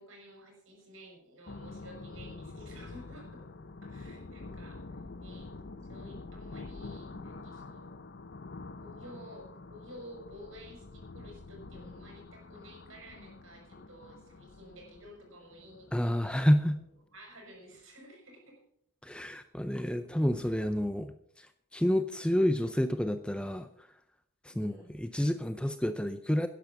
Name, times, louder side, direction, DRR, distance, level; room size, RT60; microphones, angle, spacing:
voice 1, 0.0-3.5 3.8-5.6 5.9-7.9 8.8-16.5 16.8-18.6 19.2-19.5 24.5-25.0, equal, 65° right, 1 dB, 5.9 m, -52 dB
sound 1, 1.5-16.8, left 3 dB, 50° left, 0.6 m, -47 dB
voice 2, 15.9-16.8 19.0-21.5 21.7-23.7 24.4-26.5, equal, 5° left, 10 dB, 0.4 m, -29 dB
12.0 x 10.5 x 5.8 m, 0.71 s
head